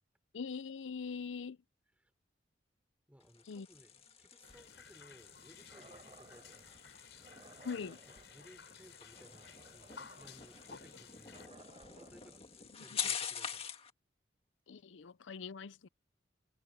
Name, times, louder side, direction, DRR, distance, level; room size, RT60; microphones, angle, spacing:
voice 1, 0.3-1.6 3.5-3.7 7.6-8.0 14.7-15.9, left 5 dB, 85° left, 0.5 m, -42 dB
voice 2, 3.1-7.4 7.7-13.7, equal, 5° right, 4.1 m, -62 dB
sound 1, 3.2-13.9, left 7 dB, 30° left, 1.8 m, -46 dB
sound 2, 4.4-11.5, left 5 dB, 70° left, 6.8 m, -56 dB
sound 3, 5.7-6.7 7.2-12.4, right 2 dB, 30° right, 4.2 m, -60 dB
head